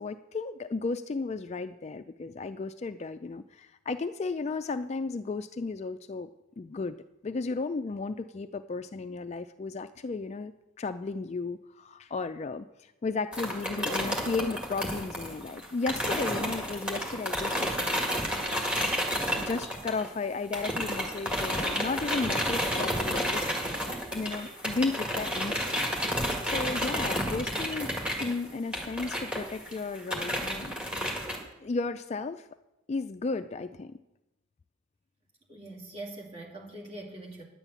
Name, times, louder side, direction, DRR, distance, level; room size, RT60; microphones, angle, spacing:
voice 1, 0.0-6.3 6.6-7.0 7.2-18.3 19.2-23.5 23.8-25.9 26.5-27.9 28.2-30.7 31.6-32.5 32.9-34.0, left 3 dB, 35° left, 11 dB, 0.3 m, -34 dB
sound 1, 13.3-20.2 20.5-31.4, equal, 5° right, 1.9 m, -31 dB
voice 2, 35.5-37.4, right 2 dB, 30° right, -3 dB, 2.6 m, -42 dB
10.5 x 7.4 x 8.1 m, 0.95 s
head